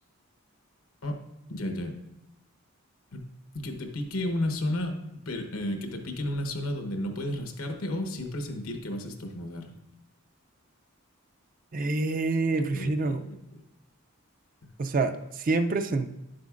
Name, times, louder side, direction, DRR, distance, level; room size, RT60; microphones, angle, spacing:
voice 1, 1.5-1.9 3.1-3.3 3.5-9.7 12.5-13.4, left 1 dB, 80° left, 4 dB, 1.0 m, -33 dB
voice 2, 11.7-13.2 14.8-16.1, right 3 dB, 40° right, 8 dB, 0.4 m, -27 dB
9.8 x 7.5 x 2.4 m, 0.93 s
head